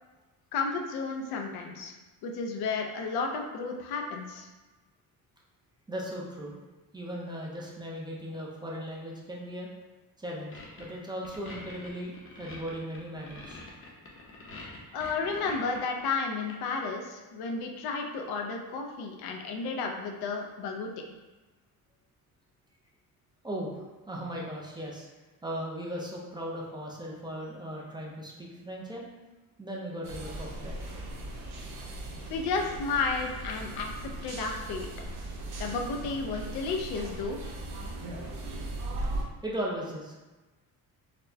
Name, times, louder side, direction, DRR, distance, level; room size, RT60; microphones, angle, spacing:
voice 1, 0.5-1.9 2.2-4.5 14.9-20.9 32.3-34.9 35.6-37.4, left 4 dB, 85° left, 2 dB, 0.6 m, -32 dB
voice 2, 5.9-6.6 6.9-9.7 10.2-13.6 23.4-25.1 25.4-29.1 29.6-30.8 39.4-40.2, equal, 10° right, -3 dB, 0.4 m, -37 dB
sound 1, 10.5-10.9 11.2-16.0 16.5-16.9, left 2 dB, 35° left, 0.7 m, -45 dB
sound 2, 30.0-39.2, right 1 dB, 85° right, 0.7 m, -38 dB
4.2 x 2.1 x 2.7 m, 1.2 s
cardioid pair, 135°, 37 cm